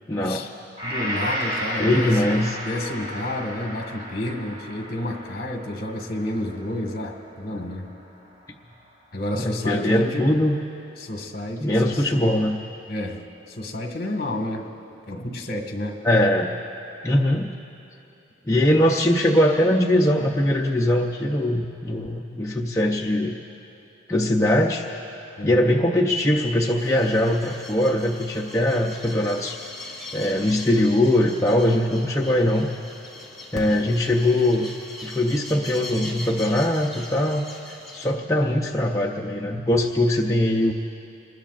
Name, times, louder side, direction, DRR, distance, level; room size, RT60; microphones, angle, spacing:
voice 1, 0.1-0.5 1.8-2.6 9.3-10.6 11.6-12.6 16.0-16.5 17.0-17.5 18.4-23.4 24.1-24.9 25.4-29.6 30.1-32.7 33.5-34.7 35.0-40.7, left 1 dB, 15° left, -1 dB, 0.6 m, -21 dB
voice 2, 0.8-2.2 2.6-7.9 9.1-10.3 11.0-12.0 12.9-14.7 15.1-16.0 25.4-25.6, left 1 dB, 55° left, 2 dB, 1.6 m, -30 dB
Gong, 0.8-9.1 9.5-9.6, equal, 35° right, 4.2 m, -34 dB
sound 1, 26.8-38.1, left 1 dB, ahead, 2.1 m, -40 dB
26.5 x 20.5 x 2.5 m, 2.7 s
head